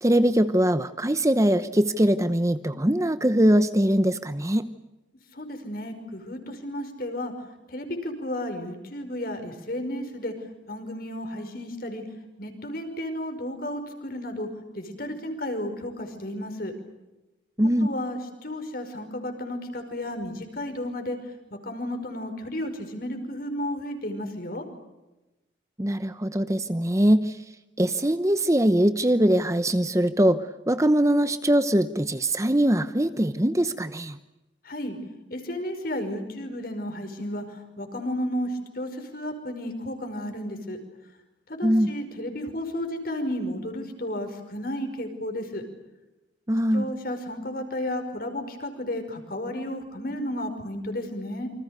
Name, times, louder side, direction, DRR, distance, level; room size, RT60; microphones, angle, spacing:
voice 1, 0.0-4.6 17.6-17.9 25.8-27.4 27.8-34.2 41.6-41.9 46.5-46.9, right 1 dB, 15° right, 11 dB, 0.9 m, -22 dB
voice 2, 5.3-7.3 7.7-10.3 10.7-12.0 12.4-14.5 14.7-16.7 17.8-21.2 21.6-24.6 34.7-35.0 35.3-37.4 37.8-40.8 41.5-45.6 46.7-51.5, left 1 dB, 50° left, 6 dB, 5.5 m, -33 dB
28.5 x 26.0 x 6.7 m, 1.0 s
head